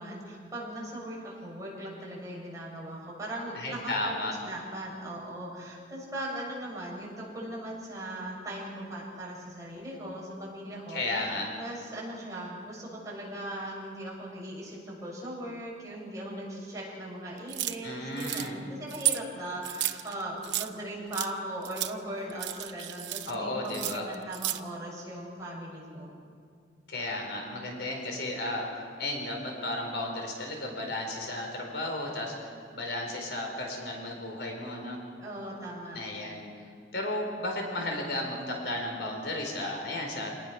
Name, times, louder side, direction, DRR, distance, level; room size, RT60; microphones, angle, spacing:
voice 1, 0.0-4.1 4.4-11.3 11.5-26.2 35.2-36.0, right 1 dB, 20° right, -5 dB, 7.2 m, -39 dB
voice 2, 3.5-4.3 10.9-11.5 17.8-18.5 23.3-24.0 26.9-35.0 35.9-36.4 36.9-40.3, left 1 dB, 70° left, 1 dB, 4.5 m, -34 dB
sound 1, 17.5-17.8 18.2-18.5 18.9-19.2 19.6-20.7 21.1-21.3 21.6-21.9 22.3-23.3 23.6-24.6, right 14 dB, 90° right, 0.8 m, -32 dB
27.5 x 19.5 x 6.1 m, 2.2 s
head